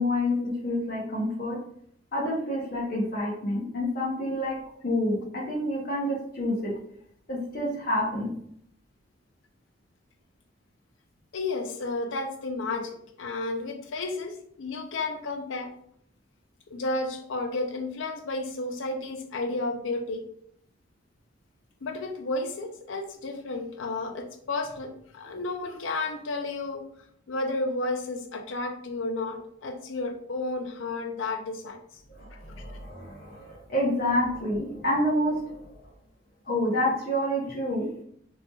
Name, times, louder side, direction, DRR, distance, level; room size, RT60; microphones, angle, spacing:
voice 1, 0.0-1.6 2.1-4.6 4.8-6.7 7.3-8.3 32.2-35.8 36.4-37.9, left 1 dB, 45° left, -4 dB, 0.8 m, -28 dB
voice 2, 11.3-15.7 16.7-20.2 21.8-26.8 27.3-31.8, left 2 dB, 70° left, 5 dB, 0.5 m, -32 dB
4.1 x 2.7 x 2.3 m, 0.67 s
head